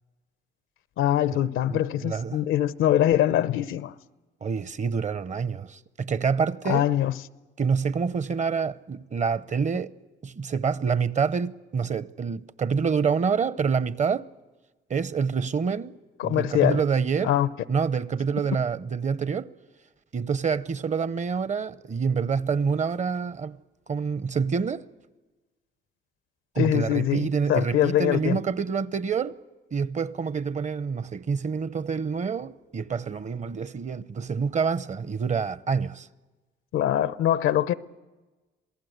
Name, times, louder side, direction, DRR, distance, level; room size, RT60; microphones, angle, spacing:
voice 1, 1.0-3.9 6.7-7.1 16.2-16.8 17.2-17.5 26.6-28.4 36.7-37.7, left 12 dB, 85° left, 0.7 m, -23 dB
voice 2, 1.7-2.4 4.4-6.9 7.6-9.9 10.2-14.3 14.9-16.0 16.2-17.3 17.7-19.5 20.1-23.6 23.9-24.9 26.5-29.4 29.7-36.1, right 6 dB, 35° right, 0.7 m, -27 dB
27.5 x 18.0 x 8.0 m
cardioid pair, 90°, 20 cm